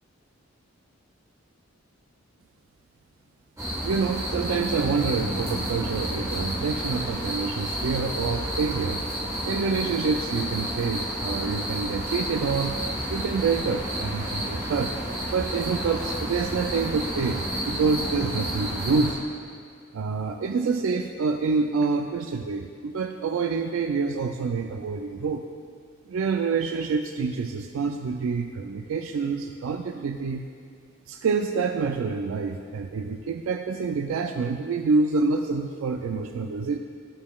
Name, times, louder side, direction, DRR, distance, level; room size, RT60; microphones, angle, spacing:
sound 1, 3.6-19.1, equal, 15° right, 1.2 m, -30 dB
voice 1, 3.8-9.0 9.4-12.8 13.1-14.9 15.2-19.2 19.9-25.4 26.1-30.5 31.1-36.8, right 4 dB, 75° right, 5 dB, 0.3 m, -27 dB
13.5 x 7.1 x 2.3 m, 2.2 s
head